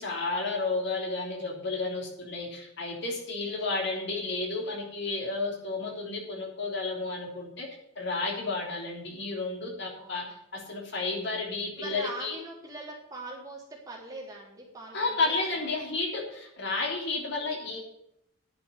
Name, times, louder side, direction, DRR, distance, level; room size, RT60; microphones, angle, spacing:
voice 1, 0.0-7.7 7.9-10.2 10.5-12.4 14.9-17.8, left 3 dB, 55° left, 0 dB, 3.3 m, -32 dB
voice 2, 10.0-10.3 11.8-15.3, right 2 dB, 15° right, -3 dB, 3.4 m, -42 dB
10.5 x 6.9 x 8.1 m, 0.76 s
head